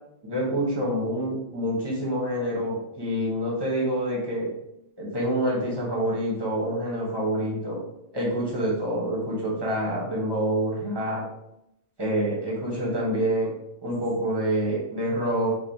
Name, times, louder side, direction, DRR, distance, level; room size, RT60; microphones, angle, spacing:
voice 1, 0.2-4.5 5.0-7.8 8.1-11.2 12.0-13.5 13.8-15.5, right 1 dB, 20° right, -4 dB, 1.0 m, -27 dB
4.4 x 2.7 x 2.7 m, 0.81 s
omnidirectional pair, 1.2 m